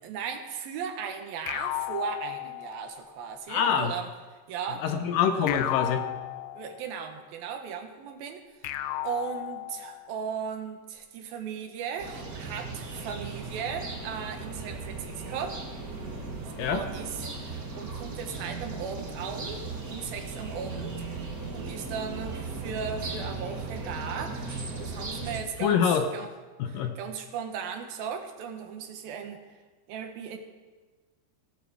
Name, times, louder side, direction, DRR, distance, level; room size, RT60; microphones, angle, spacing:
voice 1, 0.0-4.1 4.5-4.8 6.5-8.7 9.0-15.6 16.6-26.3 26.7-29.4 29.9-30.4, right 7 dB, 70° right, 5 dB, 3.0 m, -37 dB
sound 1, 1.5-3.1 5.5-7.1 8.6-10.1, left 14 dB, 90° left, 1.9 m, -34 dB
voice 2, 3.5-3.9 4.8-6.1 16.6-16.8 25.6-26.1 26.6-26.9, left 7 dB, 75° left, 7 dB, 2.3 m, -25 dB
sound 2, 12.0-25.4, right 3 dB, 45° right, 1.1 m, -37 dB
16.5 x 9.4 x 7.2 m, 1.3 s
omnidirectional pair, 4.6 m